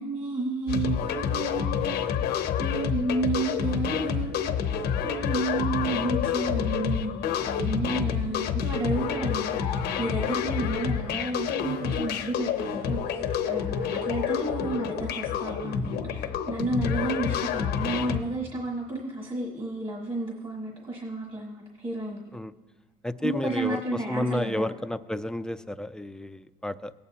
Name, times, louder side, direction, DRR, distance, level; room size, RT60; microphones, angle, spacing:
voice 1, 0.0-2.0 2.6-4.5 5.0-22.2 23.2-24.7, right 2 dB, 30° right, -2 dB, 1.5 m, -32 dB
sound 1, 0.7-18.2, left 7 dB, 80° left, 0.8 m, -28 dB
voice 2, 23.0-26.9, left 1 dB, 5° left, 11 dB, 0.3 m, -32 dB
17.5 x 8.6 x 2.8 m, 1.4 s
cardioid pair, 110°, 17 cm